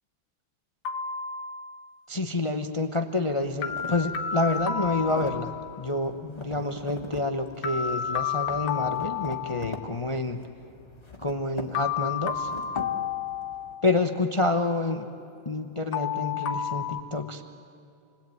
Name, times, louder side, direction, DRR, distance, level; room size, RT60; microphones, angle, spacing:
sound 1, 0.9-2.0 3.6-5.9 7.6-10.0 11.8-14.1 15.9-17.0, left 8 dB, 70° left, 1.6 m, -31 dB
voice 1, 2.1-10.5 11.2-12.6 13.8-15.1 15.4-17.4, left 2 dB, 45° left, 6 dB, 0.4 m, -28 dB
sound 2, 3.3-13.7, left 2 dB, 15° left, 1.6 m, -43 dB
27.5 x 20.5 x 9.3 m, 2.7 s
omnidirectional pair, 2.3 m